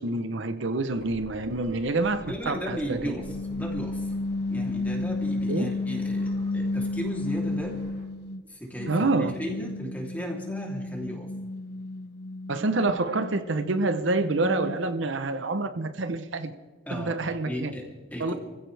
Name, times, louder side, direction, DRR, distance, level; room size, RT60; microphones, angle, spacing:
voice 1, 0.0-3.2 5.5-5.7 8.9-9.3 12.5-16.5 16.9-17.7 18.2-18.3, right 2 dB, 65° right, 9 dB, 0.8 m, -27 dB
sound 1, 0.9-8.0, equal, 35° left, 4.7 m, -50 dB
voice 2, 2.3-4.1 4.5-7.8 8.5-11.3 16.9-17.2 17.4-18.3, equal, 10° left, -1 dB, 3.1 m, -35 dB
sound 2, 3.1-8.4 8.8-15.0, left 2 dB, 50° left, 0.5 m, -32 dB
26.5 x 15.5 x 3.4 m, 1.4 s
head